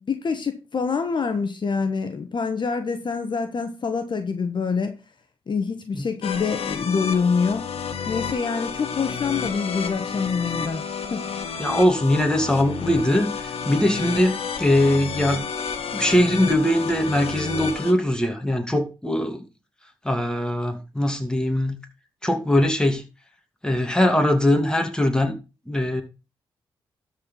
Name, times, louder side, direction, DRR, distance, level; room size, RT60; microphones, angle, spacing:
voice 1, 0.0-5.0 5.5-7.7 8.1-10.8 11.1-11.3, left 5 dB, 50° left, 1.3 m, -26 dB
sound 1, 6.2-17.9, left 6 dB, 80° left, 1.3 m, -31 dB
voice 2, 11.6-15.5 15.9-19.4 20.0-21.8 22.2-23.0 23.6-25.3 25.7-26.0, left 1 dB, 10° left, 2.5 m, -21 dB
12.5 x 4.6 x 5.4 m
supercardioid pair, 55°, 10 cm